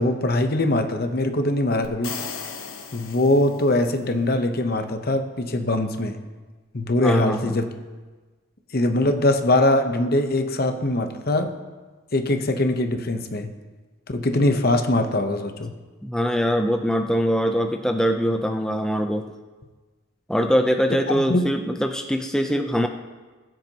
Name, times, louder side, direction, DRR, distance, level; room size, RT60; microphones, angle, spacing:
voice 1, 0.0-2.1 2.9-6.2 6.7-7.7 8.7-11.5 12.1-13.5 14.1-15.7 21.1-21.5, left 1 dB, 45° left, 7 dB, 0.8 m, -22 dB
sound 1, 1.8-3.9, left 6 dB, 70° left, 1.1 m, -36 dB
voice 2, 7.0-7.6 16.0-19.3 20.3-22.9, equal, 5° left, 4 dB, 0.5 m, -23 dB
21.0 x 7.5 x 2.9 m, 1.3 s
head